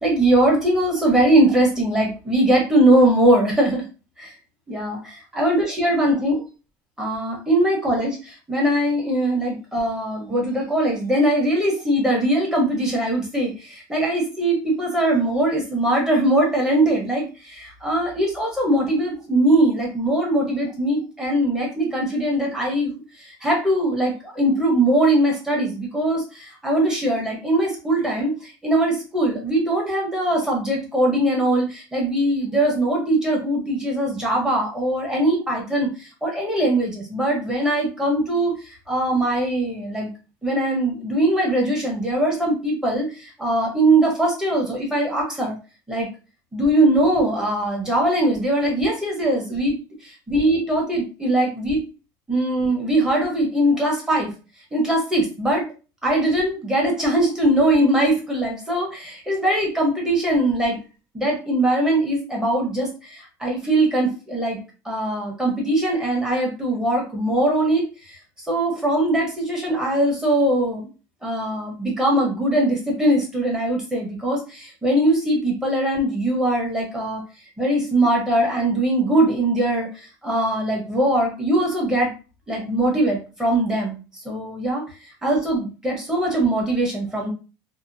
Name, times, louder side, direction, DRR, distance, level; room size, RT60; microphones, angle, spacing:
voice 1, 0.0-3.8 4.2-4.3 4.7-5.0 5.3-6.4 7.0-40.1 40.4-45.6 45.9-46.1 46.5-51.8 52.3-54.3 54.7-55.7 56.0-60.8 61.1-64.6 64.8-70.9 71.2-77.2 77.6-82.1 82.5-84.8 85.2-87.3, right 1 dB, 5° right, -2 dB, 1.0 m, -21 dB
2.8 x 2.2 x 2.6 m, 0.33 s
cardioid pair, 145°, 9 cm